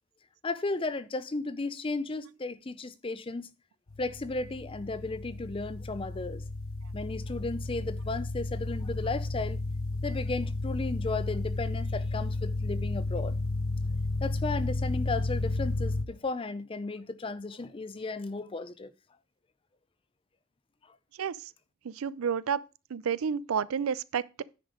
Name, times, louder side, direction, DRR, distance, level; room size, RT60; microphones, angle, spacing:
voice 1, 0.4-3.5 4.0-6.5 6.9-9.6 10.0-13.4 14.2-18.9, left 3 dB, 25° left, 0.5 m, -34 dB
sound 1, 3.9-16.0, left 2 dB, 85° left, 1.1 m, -32 dB
voice 2, 21.9-22.6 22.9-24.4, right 7 dB, 85° right, 0.4 m, -30 dB
9.9 x 5.1 x 5.0 m
head